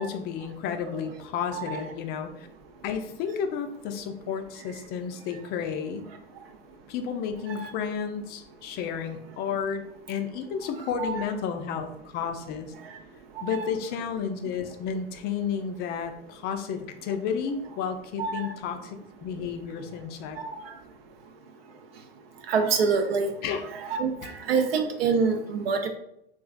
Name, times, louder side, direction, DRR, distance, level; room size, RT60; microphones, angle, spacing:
voice 1, 0.0-2.5 2.8-6.1 6.9-11.9 12.1-12.7 13.4-20.4 23.4-23.6 24.2-24.3, left 7 dB, 30° left, 6 dB, 0.4 m, -32 dB
voice 2, 1.5-1.8 7.5-7.7 11.0-11.2 13.5-13.7 18.2-18.5 20.5-20.6 22.5-23.3 23.7-25.9, right 5 dB, 65° right, 5 dB, 0.5 m, -26 dB
3.8 x 2.4 x 2.4 m, 0.77 s
figure-of-eight pair, 80°, 32 cm